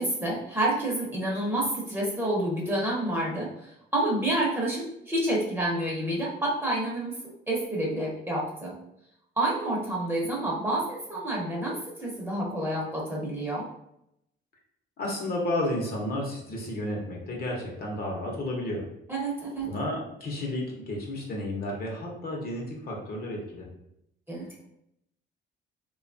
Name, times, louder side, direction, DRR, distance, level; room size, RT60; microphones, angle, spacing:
voice 1, 0.0-7.2 7.5-8.8 9.4-13.7 19.1-19.7 24.3-24.5, right 1 dB, 10° right, -4 dB, 0.8 m, -29 dB
voice 2, 15.0-18.9 19.7-23.7, left 1 dB, 50° left, -1 dB, 0.8 m, -32 dB
2.7 x 2.3 x 2.6 m, 0.79 s
cardioid pair, 90°, 20 cm